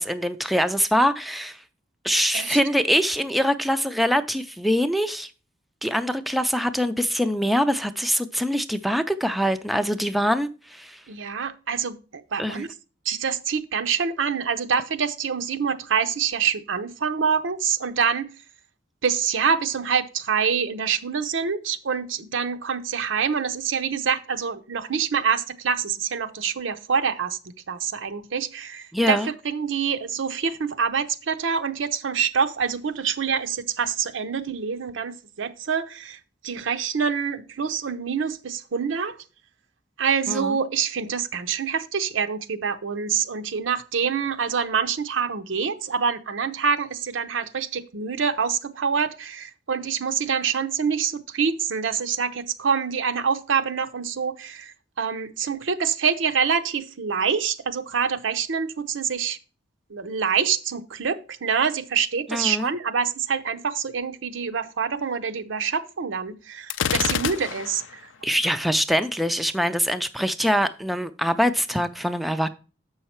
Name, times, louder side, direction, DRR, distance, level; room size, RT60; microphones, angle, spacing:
voice 1, 0.0-1.6 2.0-5.3 5.8-11.0 12.4-12.6 28.9-29.3 40.3-40.6 62.3-62.7 68.2-72.5, equal, ahead, 0.3 m, -24 dB
voice 2, 11.1-12.7 13.1-18.3 19.0-27.4 27.7-39.2 40.0-59.4 59.9-68.1, right 6 dB, 85° right, 0.7 m, -26 dB
Gunshot gunfire, 66.7-67.9, left 8 dB, 80° left, 0.4 m, -26 dB
7.1 x 5.6 x 4.3 m
head